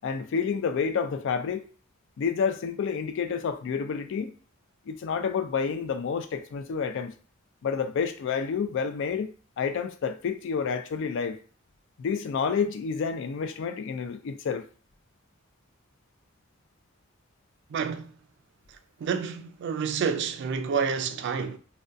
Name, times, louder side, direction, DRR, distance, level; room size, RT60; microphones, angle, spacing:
voice 1, 0.0-1.7 2.2-4.3 4.9-7.1 7.6-11.4 12.0-14.6, left 6 dB, 65° left, 0.3 m, -29 dB
voice 2, 17.7-18.1 19.0-21.6, right 6 dB, 60° right, 0.3 m, -29 dB
2.3 x 2.2 x 2.5 m
head